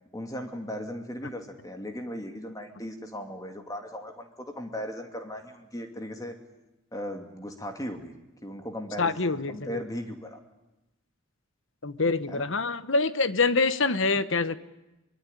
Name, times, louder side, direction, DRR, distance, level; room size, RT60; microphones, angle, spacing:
voice 1, 0.1-6.4 6.9-8.1 8.4-10.4 12.3-12.5, equal, 15° left, 5 dB, 2.7 m, -37 dB
voice 2, 9.0-9.8 11.8-14.5, left 3 dB, 60° left, 14 dB, 1.1 m, -25 dB
24.0 x 23.0 x 9.9 m, 0.97 s
head